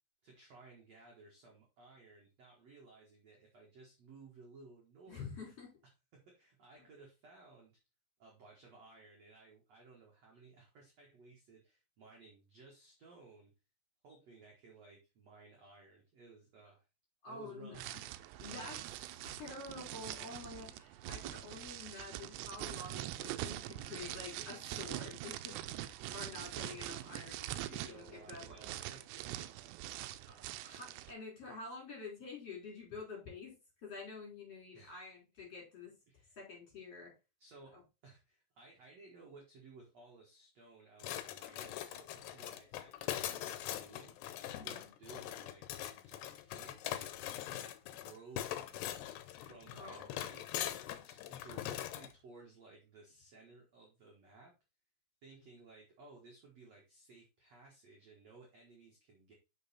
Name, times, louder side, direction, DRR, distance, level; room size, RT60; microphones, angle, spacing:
voice 1, 0.2-5.3 6.3-7.7 8.2-13.5 14.0-16.8 17.3-17.8 23.8-24.5 27.6-29.5 34.7-35.1 36.1-36.4 37.4-37.8 38.0-47.1 47.5-48.9 49.3-50.6 51.0-54.5 55.2-59.3, right 3 dB, 55° right, -1 dB, 2.0 m, -58 dB
voice 2, 5.1-5.7 17.2-17.8 18.4-18.8 19.2-25.8 26.1-27.4 27.8-28.6 30.3-33.5 33.8-35.9 36.4-37.1 37.7-37.8 44.6-44.9 49.8-50.1, left 3 dB, 35° left, -2 dB, 4.7 m, -48 dB
sound 1, 17.7-31.1, right 14 dB, 85° right, 2.6 m, -44 dB
sound 2, 41.0-52.1, left 12 dB, 80° left, 2.7 m, -42 dB
6.4 x 6.2 x 4.2 m, 0.28 s
omnidirectional pair, 5.0 m